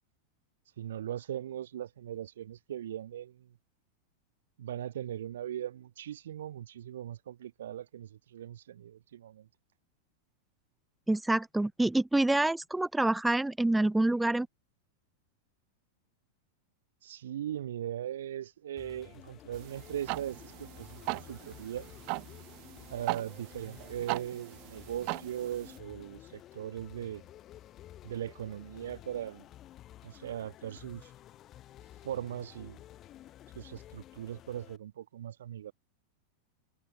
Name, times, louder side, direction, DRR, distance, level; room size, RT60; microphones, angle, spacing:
voice 1, 0.8-3.6 4.6-9.5 17.0-21.9 22.9-27.2 28.0-29.5 30.0-31.1 32.0-32.8 33.5-35.7, right 11 dB, 60° right, 2.7 m, -39 dB
voice 2, 11.1-14.5, right 2 dB, 5° right, 1.3 m, -27 dB
sound 1, 18.8-34.8, left 13 dB, 30° left, 4.9 m, -52 dB
sound 2, 19.5-25.8, right 36 dB, 45° right, 1.2 m, -40 dB
figure-of-eight pair, 90°, 0 cm